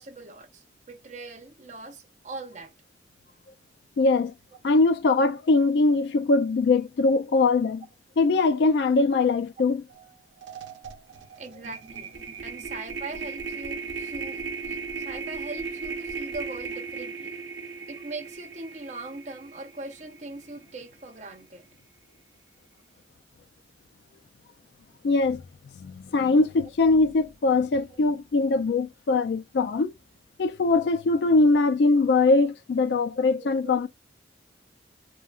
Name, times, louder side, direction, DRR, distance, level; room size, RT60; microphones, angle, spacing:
voice 1, 0.0-2.7 11.4-17.4 17.9-21.7 27.9-28.0 29.1-29.2 29.7-29.8 33.4-33.8, right 2 dB, 40° right, 0.7 m, -41 dB
voice 2, 4.0-4.3 4.6-7.8 8.2-9.8 25.0-25.4 25.8-29.9 30.4-33.9, left 3 dB, 65° left, 0.3 m, -22 dB
sound 1, 9.9-10.1 10.4-20.6, right 5 dB, 85° right, 0.6 m, -37 dB
3.0 x 2.3 x 2.3 m
head